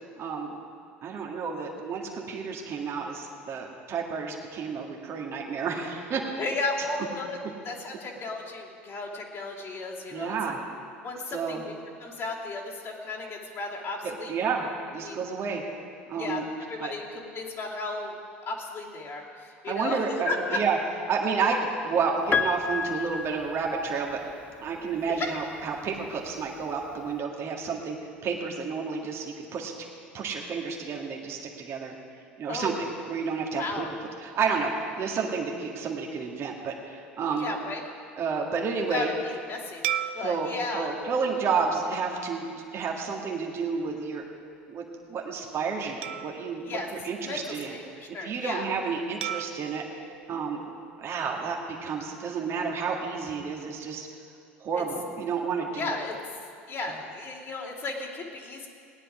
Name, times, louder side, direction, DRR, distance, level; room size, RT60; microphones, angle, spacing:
voice 1, 0.2-0.6 1.0-6.2 10.1-10.6 11.3-11.6 14.0-15.6 16.1-16.4 16.8-16.9 19.6-20.8 21.1-24.2 24.6-28.0 28.2-29.7 30.1-31.9 32.4-33.8 34.2-37.5 38.2-39.1 40.2-44.2 44.7-47.8 48.2-49.8 50.3-50.7 51.0-54.1 54.6-56.0, right 5 dB, 45° right, 0 dB, 1.8 m, -30 dB
voice 2, 6.4-7.4 7.6-10.3 11.0-11.7 12.0-14.3 15.0-15.2 16.2-18.1 18.5-20.6 25.2-25.3 32.5-32.8 33.6-33.9 37.4-37.8 38.9-39.8 40.1-40.9 46.6-46.9 47.2-48.7 54.8-54.9 55.8-56.2 56.7-58.7, left 3 dB, 45° left, -5 dB, 2.7 m, -34 dB
Piano, 22.3-24.3 25.6-25.7, left 5 dB, 20° left, 0.5 m, -30 dB
sound 1, 39.8-42.5 43.1-43.3 46.0-47.8 49.2-51.5, right 11 dB, 70° right, 0.5 m, -38 dB
17.5 x 10.0 x 5.0 m, 2.3 s
hypercardioid pair, 75°, 6 cm